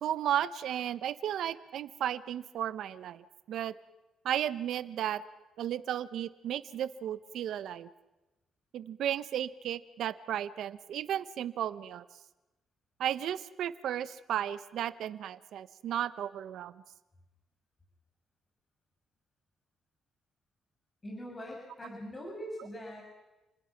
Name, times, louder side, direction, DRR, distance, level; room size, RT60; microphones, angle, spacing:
voice 1, 0.0-3.7 4.2-5.2 5.6-7.9 8.7-12.0 13.0-16.8, right 10 dB, 75° right, 14 dB, 1.0 m, -34 dB
voice 2, 21.0-23.0, equal, 25° left, 0 dB, 6.5 m, -42 dB
29.5 x 20.5 x 6.0 m, 1.1 s
cardioid pair, 90°, 0 cm